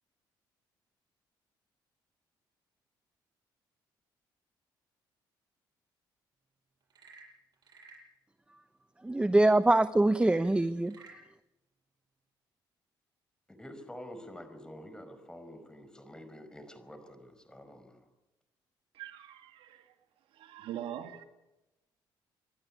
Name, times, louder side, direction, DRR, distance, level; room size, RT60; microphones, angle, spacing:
Frog / Percussion / Wood, 6.8-8.1 10.1-11.2, right 3 dB, 50° right, 7.7 m, -54 dB
voice 1, 9.0-11.0, right 2 dB, 10° right, 0.9 m, -24 dB
voice 2, 13.5-18.0, equal, 10° left, 5.1 m, -48 dB
voice 3, 18.9-19.9 20.3-21.2, right 11 dB, 80° right, 2.2 m, -43 dB
27.5 x 12.0 x 9.8 m
cardioid pair, 75°, 9 cm